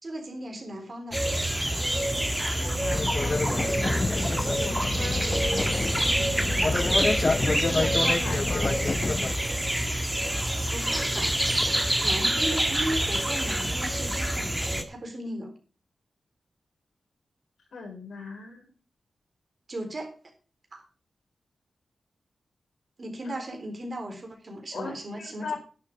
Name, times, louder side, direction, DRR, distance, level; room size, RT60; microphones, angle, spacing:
voice 1, 0.0-1.2 10.7-11.4 12.0-15.5 19.7-20.2 20.7-20.8 23.0-25.6, right 1 dB, 45° right, 4 dB, 3.9 m, -36 dB
sound 1, 1.1-14.8, right 1 dB, 10° right, 1.6 m, -27 dB
voice 2, 2.4-5.8 6.9-8.7 17.7-18.7 23.3-23.4 24.7-25.6, left 4 dB, 85° left, 2 dB, 4.2 m, -38 dB
sound 2, 2.9-9.3, left 3 dB, 35° left, 0.5 m, -28 dB
11.0 x 7.4 x 6.6 m, 0.38 s
wide cardioid pair, 90°, 0 cm